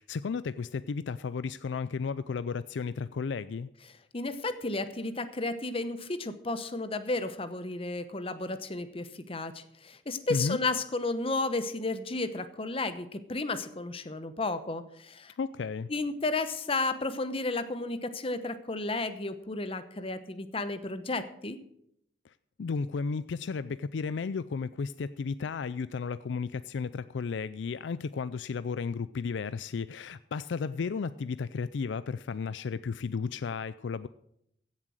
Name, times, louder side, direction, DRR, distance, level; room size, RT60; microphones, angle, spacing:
voice 1, 0.0-3.7 10.3-10.6 15.4-15.9 22.2-22.3 22.6-34.1, left 5 dB, 90° left, 15 dB, 0.4 m, -33 dB
voice 2, 4.1-15.3 15.9-21.6, left 2 dB, 30° left, 11 dB, 0.9 m, -33 dB
15.5 x 7.5 x 6.4 m, 0.73 s
head